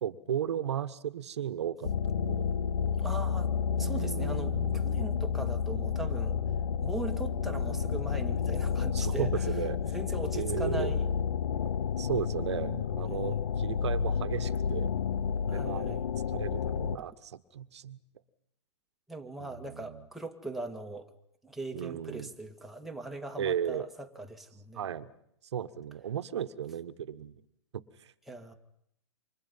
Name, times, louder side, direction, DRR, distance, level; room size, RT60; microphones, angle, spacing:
voice 1, 0.0-2.5 3.7-4.8 7.5-7.8 8.9-9.9 10.3-10.9 11.6-14.9 15.4-18.0 19.4-20.0 21.7-22.3 23.4-23.9 24.7-25.1 25.5-27.4 27.7-28.1, right 9 dB, 70° right, 11 dB, 1.4 m, -35 dB
sound 1, 1.8-17.0, left 7 dB, 75° left, 0.9 m, -30 dB
voice 2, 3.0-6.4 6.8-9.4 9.9-11.1 13.1-13.4 15.5-16.0 19.1-21.1 21.4-24.8 28.3-28.5, right 2 dB, ahead, 2 dB, 2.1 m, -40 dB
28.5 x 26.0 x 5.6 m, 0.74 s
hypercardioid pair, 140°, 15 cm